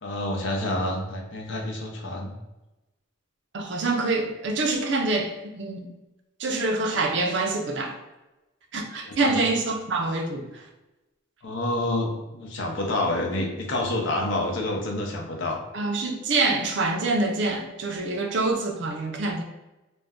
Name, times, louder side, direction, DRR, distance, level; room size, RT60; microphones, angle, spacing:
voice 1, 0.0-2.3 6.9-7.0 9.1-9.4 11.4-15.6, left 1 dB, 70° left, 1 dB, 0.6 m, -28 dB
voice 2, 3.5-5.9 6.4-8.0 8.7-10.4 15.7-19.4, right 3 dB, 60° right, 3 dB, 0.4 m, -26 dB
2.5 x 2.1 x 3.5 m, 1.0 s
head